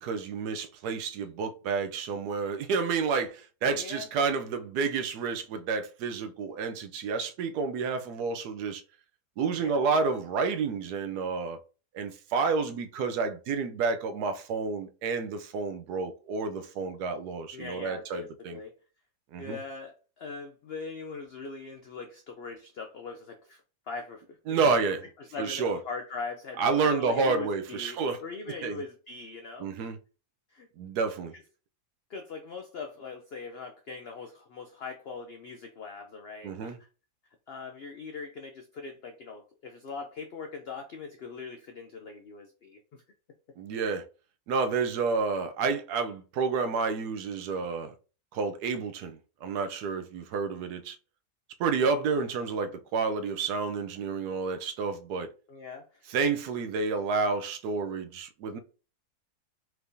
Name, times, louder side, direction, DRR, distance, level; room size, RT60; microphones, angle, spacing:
voice 1, 0.0-8.8 9.4-11.6 11.9-18.6 19.3-19.6 24.5-25.0 25.4-25.8 26.6-28.2 28.6-28.8 29.6-30.0 30.8-31.3 36.4-36.8 43.6-44.0 44.5-47.9 48.3-51.0 51.6-55.3 56.1-58.6, right 4 dB, 90° right, 1.2 m, -30 dB
voice 2, 3.7-4.1 9.5-9.7 17.5-18.7 19.4-23.6 23.9-24.4 25.2-29.9 30.5-30.7 32.1-36.9 37.5-43.0 55.5-56.0, left 4 dB, 65° left, 0.6 m, -41 dB
4.7 x 3.3 x 2.6 m
omnidirectional pair, 1.7 m